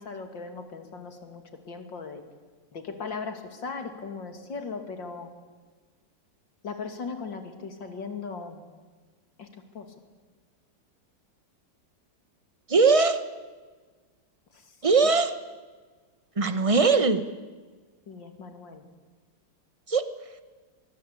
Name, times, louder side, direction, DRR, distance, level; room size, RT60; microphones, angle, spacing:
voice 1, 0.0-2.2 2.7-5.3 6.6-8.6 9.4-9.9 14.5-14.8 18.1-18.9, left 4 dB, 90° left, 6 dB, 3.3 m, -38 dB
voice 2, 12.7-13.2 14.8-15.4 16.4-17.2 19.9-20.1, right 4 dB, 20° right, 11 dB, 1.1 m, -20 dB
23.0 x 23.0 x 8.7 m, 1.4 s
omnidirectional pair, 2.0 m